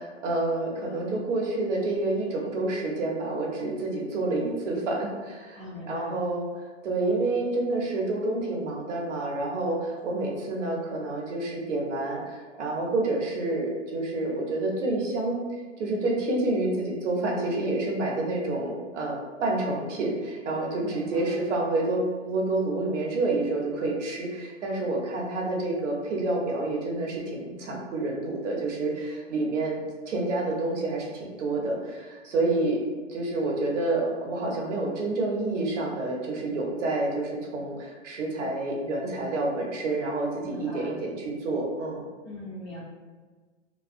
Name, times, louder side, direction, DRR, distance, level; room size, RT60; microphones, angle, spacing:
voice 1, 0.0-15.4 15.8-29.8 30.1-32.8 33.1-42.0, right 2 dB, 75° right, -1 dB, 0.8 m, -28 dB
voice 2, 5.6-6.2 20.8-21.4 40.4-41.0 42.2-42.8, left 1 dB, 35° left, -7 dB, 0.8 m, -40 dB
2.3 x 2.3 x 2.4 m, 1.4 s
hypercardioid pair, 140°, 36 cm